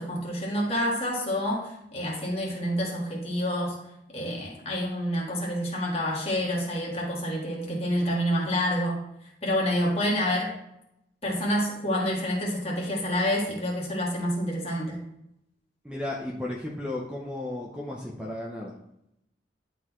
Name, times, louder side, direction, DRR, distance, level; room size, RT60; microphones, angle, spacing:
voice 1, 0.0-3.8 4.1-9.0 9.4-10.5 11.2-15.0, equal, 30° left, -2 dB, 1.7 m, -28 dB
voice 2, 15.8-18.7, left 1 dB, 5° right, -2 dB, 0.6 m, -34 dB
11.0 x 4.0 x 3.1 m, 0.80 s
head